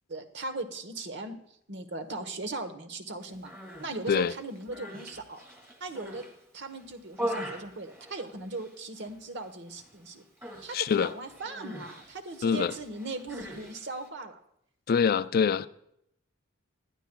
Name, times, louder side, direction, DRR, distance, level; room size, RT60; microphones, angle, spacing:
voice 1, 0.1-1.4 1.7-3.5 3.8-5.4 5.8-6.2 6.5-10.2 10.6-14.4, right 2 dB, 60° right, 1.1 m, -38 dB
Human voice, 3.3-3.9 4.5-6.3 6.7-8.7 9.0-9.5 9.7-9.9 10.4-14.1, equal, 15° right, 2.0 m, -41 dB
voice 2, 10.7-11.1 12.4-12.7 14.9-15.7, left 6 dB, 45° left, 0.4 m, -24 dB
19.0 x 12.0 x 2.3 m
head